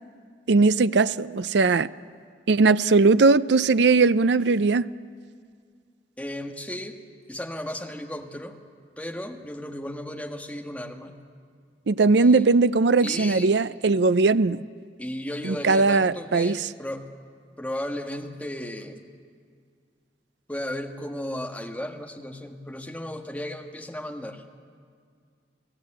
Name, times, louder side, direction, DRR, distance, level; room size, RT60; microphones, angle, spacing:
voice 1, 0.5-1.9 2.5-4.9 11.9-14.6 15.5-16.6, right 3 dB, 70° right, 0.5 m, -19 dB
voice 2, 6.2-7.0 7.3-8.6 9.0-11.2 12.1-12.5 13.0-13.6 15.0-17.1 17.6-19.0 20.5-24.4, left 1 dB, 10° left, 1.4 m, -35 dB
29.0 x 17.0 x 8.8 m
head